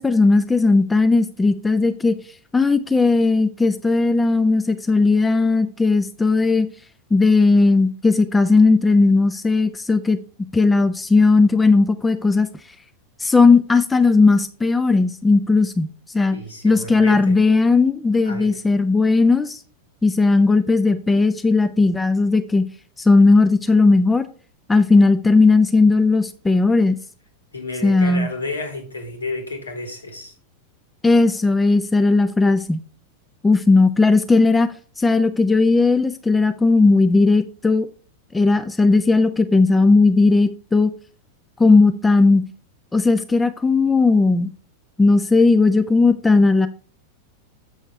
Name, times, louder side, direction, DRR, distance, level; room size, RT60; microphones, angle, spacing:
voice 1, 0.0-2.1 2.5-6.7 7.1-10.2 10.5-12.5 13.2-15.9 16.1-16.4 16.6-19.6 20.0-22.7 23.0-24.2 24.7-27.0 27.8-28.3 31.0-32.8 33.4-34.7 35.0-37.9 38.3-40.9 41.6-42.4 42.9-44.5 45.0-46.7, left 3 dB, 10° left, 0.5 m, -16 dB
voice 2, 16.3-17.4 18.3-18.6 27.5-30.3, left 2 dB, 75° left, 2.0 m, -31 dB
7.5 x 6.3 x 3.3 m
figure-of-eight pair, 90°, 0 cm